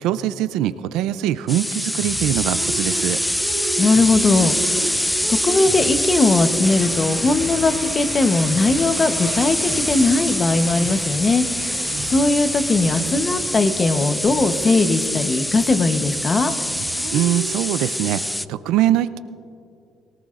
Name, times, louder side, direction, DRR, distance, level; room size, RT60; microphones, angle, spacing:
voice 1, 0.0-3.2 17.1-19.2, right 12 dB, 85° right, 14 dB, 0.4 m, -22 dB
sound 1, 1.5-18.5, left 1 dB, 5° left, 0.3 m, -25 dB
sound 2, 2.0-7.7 8.1-12.3 12.6-13.3 13.8-15.7 16.0-16.4 16.6-18.0, right 3 dB, 45° right, 3.0 m, -35 dB
voice 2, 3.8-4.9 5.3-16.5, left 3 dB, 30° left, 9 dB, 1.0 m, -19 dB
sound 3, 6.6-13.9, right 2 dB, 15° right, 1.4 m, -37 dB
22.5 x 18.0 x 2.5 m, 2.5 s
cardioid pair, 110°, 0 cm